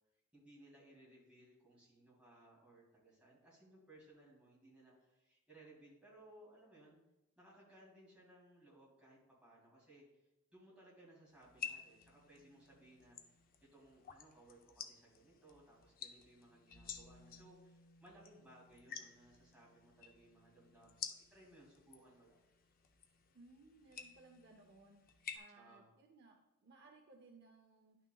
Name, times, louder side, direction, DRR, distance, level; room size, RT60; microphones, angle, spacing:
voice 1, 0.3-7.0 7.4-13.2 13.7-22.4 25.5-25.9, right 1 dB, 5° right, -6 dB, 2.4 m, -63 dB
sound 1, 11.4-25.4, left 7 dB, 40° left, 0.5 m, -52 dB
voice 2, 23.3-25.0 25.3-28.0, right 3 dB, 50° right, 2 dB, 0.6 m, -62 dB
10.5 x 6.0 x 2.3 m, 0.94 s
head